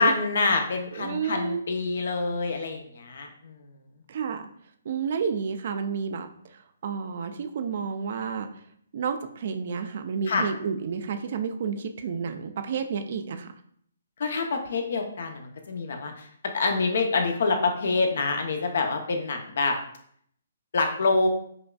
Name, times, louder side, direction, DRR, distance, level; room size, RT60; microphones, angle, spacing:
voice 1, 0.0-3.7 10.3-10.5 14.2-16.3 16.5-19.8 20.7-21.3, left 3 dB, 65° left, 4 dB, 0.6 m, -26 dB
voice 2, 0.9-1.6 4.1-4.4 4.9-6.3 6.8-8.5 8.9-13.5, right 6 dB, 55° right, 9 dB, 0.4 m, -30 dB
5.0 x 2.3 x 2.2 m, 0.65 s
hypercardioid pair, 145°, 0 cm